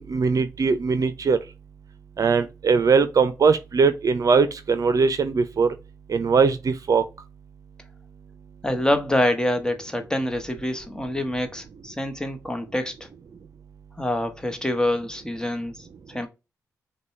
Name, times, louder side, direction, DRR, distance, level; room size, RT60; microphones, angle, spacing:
voice 1, 0.0-1.4 2.2-5.7 6.1-7.0, right 5 dB, 55° right, 0.6 m, -20 dB
voice 2, 8.6-13.1 14.0-16.3, left 1 dB, 10° left, 1.1 m, -26 dB
5.2 x 2.3 x 4.2 m
cardioid pair, 55°, 7 cm